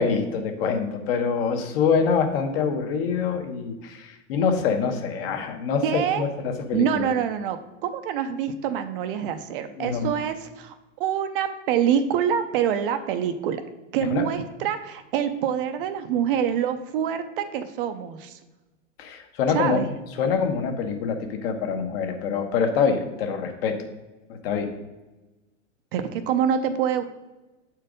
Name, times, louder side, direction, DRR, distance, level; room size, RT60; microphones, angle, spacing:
voice 1, 0.0-7.1 9.8-10.1 14.1-14.2 19.0-19.8 20.2-23.8 24.3-24.7, left 6 dB, 50° left, 5 dB, 1.2 m, -25 dB
voice 2, 5.8-6.3 6.7-13.6 13.9-18.4 19.5-19.9 25.9-27.0, right 8 dB, 45° right, 9 dB, 0.6 m, -26 dB
7.5 x 4.5 x 5.0 m, 1.1 s
hypercardioid pair, 135°, 38 cm